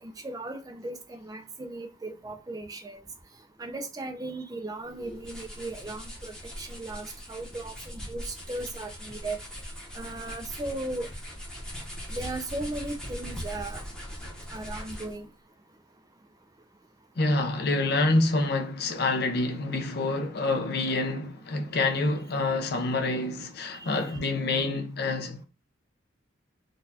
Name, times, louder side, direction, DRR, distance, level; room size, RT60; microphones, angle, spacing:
voice 1, 0.0-3.0 3.6-9.4 10.0-11.1 12.1-13.8 14.5-15.3 23.7-24.2, right 2 dB, 20° right, 0.4 m, -37 dB
sound 1, 4.9-15.3, equal, 5° left, 0.8 m, -40 dB
voice 2, 17.2-25.4, left 2 dB, 55° left, 0.5 m, -27 dB
3.9 x 2.3 x 2.6 m
head